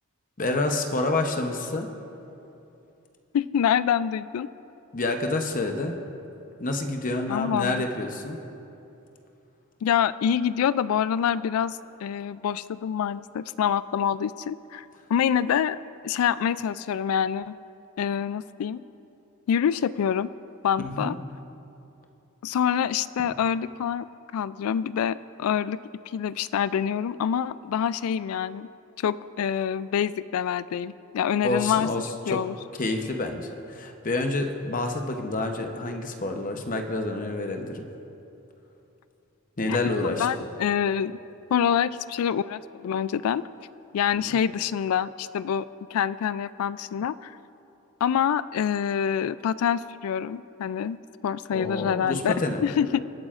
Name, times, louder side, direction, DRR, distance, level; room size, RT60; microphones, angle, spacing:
voice 1, 0.4-1.9 4.9-6.0 6.6-8.4 20.8-21.2 31.4-32.4 32.8-37.9 39.6-40.3 44.3-44.4 51.5-52.6, left 2 dB, 40° left, 4 dB, 0.8 m, -28 dB
voice 2, 3.3-4.5 7.3-7.8 9.8-15.8 16.0-17.6 18.0-18.8 19.5-20.3 20.6-21.2 22.4-24.1 24.3-25.8 26.1-28.7 29.0-31.9 32.3-32.5 39.7-41.2 41.5-43.5 43.9-47.3 48.0-51.0 51.2-52.3 52.6-53.0, left 8 dB, 75° left, 17 dB, 0.3 m, -26 dB
25.5 x 8.9 x 2.5 m, 2.8 s
head